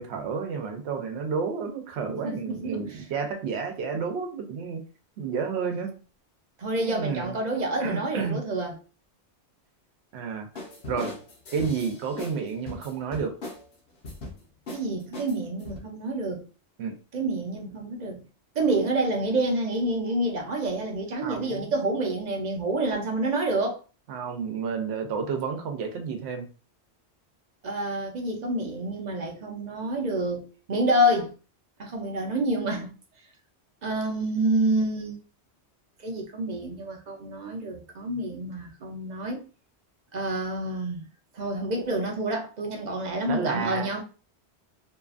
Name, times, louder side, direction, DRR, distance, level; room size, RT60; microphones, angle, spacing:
voice 1, 0.0-4.8 5.2-6.0 6.9-7.4 7.8-8.4 10.1-10.5 10.9-11.1 11.5-13.3 16.8-17.0 21.2-21.7 24.1-26.5 43.3-43.9, right 5 dB, 75° right, 0.9 m, -31 dB
voice 2, 2.1-3.0 6.6-8.8 14.7-16.5 17.1-18.2 18.6-23.8 27.6-31.3 31.8-32.9 33.8-35.2 36.0-39.4 40.1-41.0 41.3-44.0, right 1 dB, 50° right, 0.6 m, -28 dB
sound 1, 10.5-12.4 12.7-13.6 14.0-14.4 14.7-14.8 15.1-15.8, left 2 dB, 60° left, 0.9 m, -38 dB
2.7 x 2.4 x 2.4 m
omnidirectional pair, 1.1 m